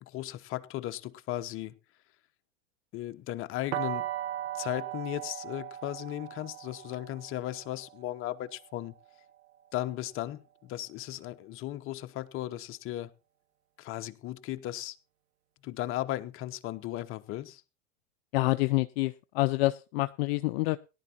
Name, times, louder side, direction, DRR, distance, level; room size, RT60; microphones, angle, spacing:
voice 1, 0.0-1.7 2.9-4.1 4.5-8.9 9.7-13.1 13.8-15.0 15.6-17.6, left 14 dB, 40° left, 0.9 m, -36 dB
sound 1, 3.7-9.6, right 13 dB, 75° right, 0.9 m, -38 dB
voice 2, 18.3-20.8, left 20 dB, 60° left, 0.5 m, -27 dB
18.0 x 11.0 x 2.9 m
hypercardioid pair, 105°, 34 cm